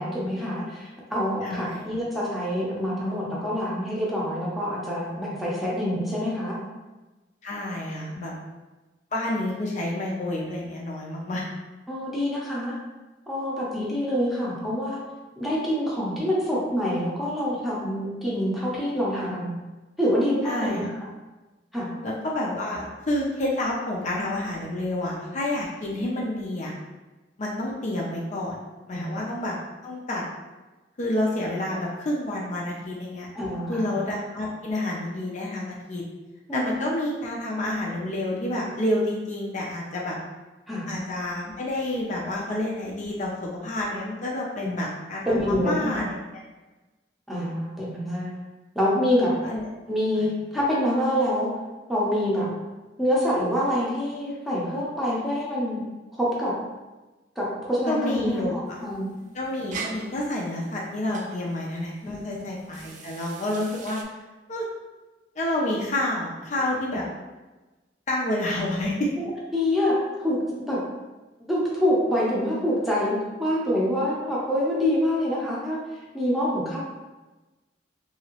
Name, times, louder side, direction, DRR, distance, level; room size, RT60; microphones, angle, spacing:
voice 1, 0.0-6.6 8.1-8.2 11.9-12.7 13.3-15.0 15.4-19.6 20.0-21.0 21.7-21.9 28.9-29.2 33.3-33.9 36.5-36.8 40.7-40.9 44.6-44.8 45.3-46.1 47.3-48.3 48.7-49.3 49.9-51.5 51.9-52.5 53.0-55.8 56.2-56.5 57.4-59.1 62.0-62.4 69.2-70.4 70.7-70.8 71.5-75.8 76.1-76.8, equal, ahead, -7 dB, 0.7 m, -26 dB
voice 2, 1.4-1.8 7.4-8.4 9.1-11.5 20.4-20.9 22.0-26.7 27.4-28.6 28.9-29.6 29.8-30.2 31.0-33.3 33.7-36.0 36.5-40.2 40.9-46.1 49.4-49.6 57.9-58.8 59.3-64.0 64.5-64.7 65.4-67.1 68.1-69.1, left 1 dB, 40° left, -3 dB, 0.5 m, -29 dB
sound 1, 58.7-64.0, right 5 dB, 40° right, 0.3 m, -41 dB
2.9 x 2.7 x 2.9 m, 1.2 s
head